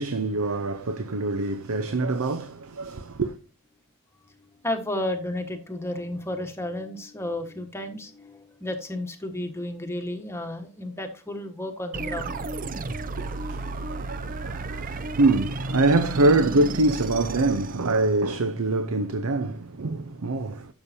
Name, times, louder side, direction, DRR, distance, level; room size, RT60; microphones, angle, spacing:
voice 1, 0.0-3.3 13.2-20.7, right 2 dB, 75° right, 0.7 m, -25 dB
voice 2, 4.6-12.3, left 1 dB, 10° left, 1.3 m, -32 dB
sound 1, 11.9-18.4, right 2 dB, 40° right, 0.5 m, -33 dB
11.5 x 7.0 x 2.7 m
head